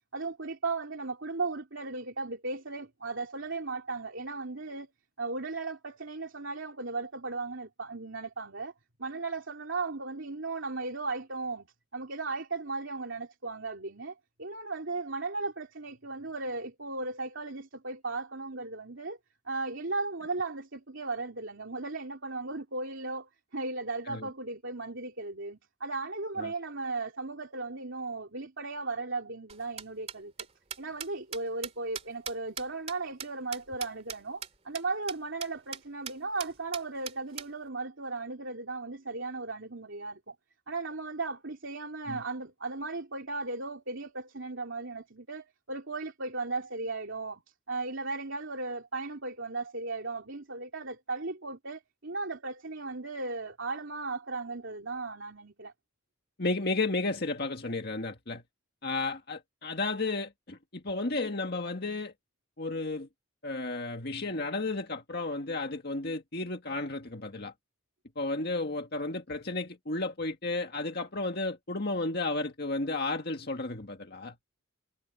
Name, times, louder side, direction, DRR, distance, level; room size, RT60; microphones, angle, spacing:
voice 1, 0.1-4.9 5.2-8.7 9.0-11.7 11.9-19.2 19.4-30.3 30.8-40.3 40.7-47.4 47.7-55.7, right 3 dB, 65° right, 2.9 m, -36 dB
sound 1, 29.5-34.2 34.4-34.5 34.7-34.8 35.1-35.2 35.4-35.8 36.1-36.2 36.4-37.5, right 7 dB, 30° right, 2.5 m, -39 dB
voice 2, 56.4-58.4 58.8-62.1 62.6-63.1 63.4-67.5 68.2-74.4, left 2 dB, 50° left, 1.8 m, -33 dB
head